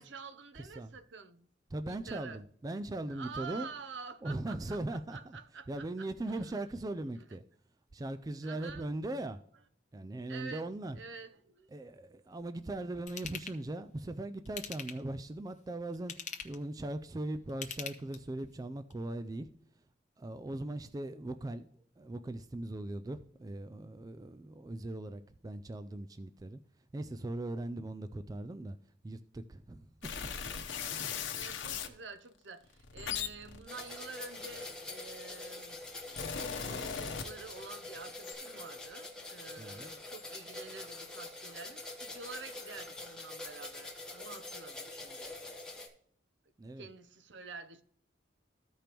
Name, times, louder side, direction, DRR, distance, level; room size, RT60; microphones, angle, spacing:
voice 1, 0.0-1.5 1.9-2.4 3.1-6.6 8.4-8.9 10.3-10.7 11.0-11.7 31.3-35.8 36.3-45.3 46.8-47.8, right 4 dB, 70° right, 0.7 m, -48 dB
voice 2, 0.5-0.9 1.7-3.7 4.2-7.4 7.9-9.4 9.9-11.0 11.7-19.5 20.2-21.7 22.0-26.6 26.9-28.8 29.0-29.9 30.9-31.1 39.6-39.9 46.6-46.9, right 2 dB, 20° right, 0.3 m, -39 dB
Ratchet pawl / Tools, 13.1-13.6 14.4-15.1 15.9-16.6 17.5-18.4 18.9-19.0, left 7 dB, 40° left, 0.8 m, -42 dB
sound 1, 30.0-31.9 32.7-35.0 35.8-37.7 38.0-38.3, left 7 dB, 90° left, 0.9 m, -39 dB
sound 2, 33.7-45.9, left 2 dB, 5° left, 1.2 m, -45 dB
14.5 x 5.1 x 3.0 m
head